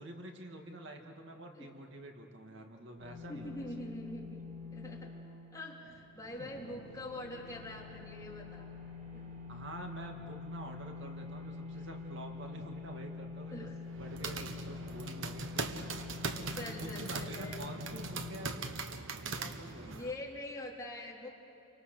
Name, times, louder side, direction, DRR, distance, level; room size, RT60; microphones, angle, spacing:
voice 1, 0.0-3.6 6.4-6.7 9.5-13.7 14.0-15.9 16.1-18.7 19.2-20.0, right 1 dB, 65° right, 3 dB, 2.2 m, -47 dB
sound 1, 3.0-18.5, left 4 dB, 45° right, 3.7 m, -46 dB
voice 2, 3.3-4.4 4.7-5.1 5.5-8.7 9.1-9.3 11.7-11.8 13.5-13.8 16.3-17.6 19.8-21.3, left 1 dB, 20° left, -2 dB, 3.3 m, -44 dB
sound 2, 13.9-20.1, right 4 dB, 85° right, 1.3 m, -40 dB
29.5 x 24.5 x 6.7 m, 2.9 s
head